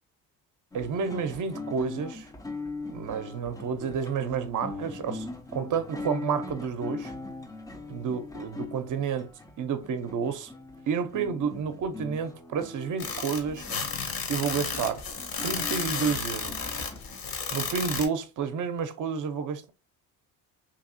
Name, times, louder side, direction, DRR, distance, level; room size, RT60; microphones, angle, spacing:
sound 1, 0.7-17.2, left 3 dB, 10° left, 0.3 m, -41 dB
voice 1, 0.7-2.3 2.9-5.3 5.5-7.1 7.9-9.3 9.6-10.5 10.9-13.6 14.3-15.0 15.4-16.6 17.5-19.7, right 6 dB, 45° right, 0.6 m, -30 dB
sound 2, 13.0-18.0, left 5 dB, 50° left, 1.0 m, -32 dB
2.9 x 2.6 x 2.5 m
supercardioid pair, 65°, 45 cm